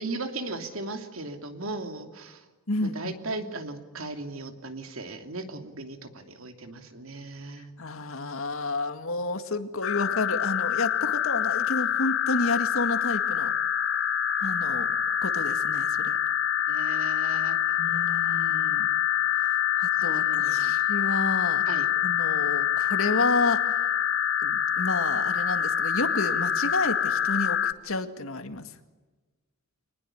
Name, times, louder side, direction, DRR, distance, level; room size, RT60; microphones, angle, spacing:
voice 1, 0.0-2.4 2.8-7.7 16.7-17.8 20.1-20.7 21.7-21.9, right 2 dB, 70° right, 6 dB, 2.9 m, -37 dB
voice 2, 2.7-3.1 7.8-13.5 14.4-14.9 15.2-16.2 17.8-18.9 19.8-21.6 22.0-23.6 24.4-28.7, left 3 dB, 75° left, 8 dB, 2.1 m, -30 dB
sound 1, 9.8-27.7, left 9 dB, 60° left, 0.9 m, -26 dB
26.0 x 20.0 x 10.0 m, 1.2 s
head